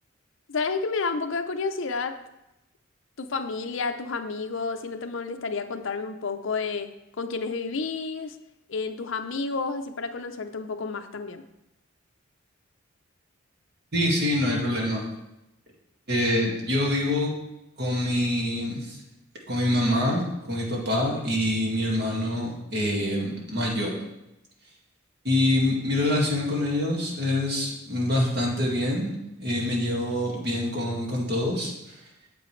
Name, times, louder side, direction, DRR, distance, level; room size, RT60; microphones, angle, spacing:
voice 1, 0.5-2.2 3.2-6.9 7.2-8.4 8.7-11.4, left 4 dB, 65° left, 7 dB, 0.6 m, -30 dB
voice 2, 13.9-15.0 16.1-17.3 17.8-19.0 19.5-23.9 25.2-29.1 29.4-31.7, left 1 dB, 50° right, -2 dB, 2.0 m, -25 dB
8.7 x 7.8 x 3.2 m, 0.91 s
head